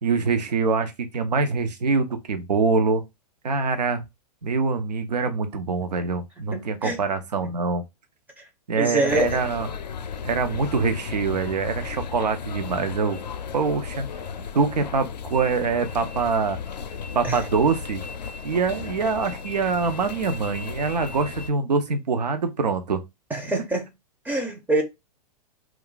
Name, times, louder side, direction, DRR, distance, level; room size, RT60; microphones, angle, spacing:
voice 1, 0.0-3.0 3.4-4.0 4.4-7.8 8.7-9.7 10.2-13.2 13.5-14.1 14.5-16.6 17.1-18.0 18.4-23.0 23.4-23.5, right 4 dB, 85° right, 0.6 m, -24 dB
voice 2, 6.5-7.0 8.8-9.4 17.2-17.4 23.3-23.9 24.3-24.8, right 1 dB, 10° right, 0.4 m, -25 dB
Kings Cross - Footsteps in Station, 9.1-21.5, left 6 dB, 90° left, 0.5 m, -35 dB
2.3 x 2.3 x 3.7 m
hypercardioid pair, 115°, 21 cm